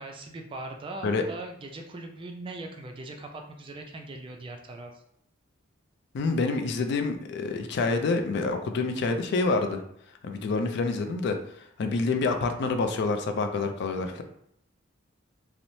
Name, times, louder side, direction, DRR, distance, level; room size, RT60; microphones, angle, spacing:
voice 1, 0.0-5.0, right 2 dB, 25° right, 3 dB, 0.3 m, -40 dB
voice 2, 6.1-9.8 10.2-11.4 11.8-14.2, left 3 dB, 60° left, 6 dB, 0.3 m, -27 dB
3.0 x 2.0 x 2.6 m, 0.73 s
head